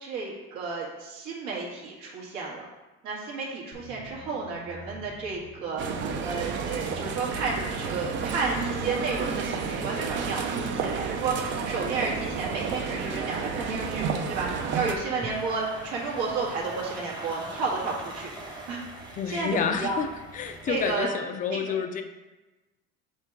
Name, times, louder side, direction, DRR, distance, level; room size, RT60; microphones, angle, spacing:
voice 1, 0.0-2.6 3.0-5.8 6.2-11.4 11.6-14.5 14.7-18.3 18.7-20.0 20.7-21.2 21.7-21.8, right 4 dB, 75° right, -3 dB, 1.8 m, -32 dB
sound 1, 3.7-11.1, equal, 60° right, 1.3 m, -46 dB
sound 2, 5.8-14.9, right 5 dB, 40° right, 0.6 m, -31 dB
sound 3, 10.0-21.0, right 2 dB, 15° right, 0.9 m, -44 dB
voice 2, 19.1-20.1 20.3-22.0, left 7 dB, 25° left, 7 dB, 0.4 m, -29 dB
5.7 x 3.7 x 4.6 m, 1.1 s
cardioid pair, 155°, 29 cm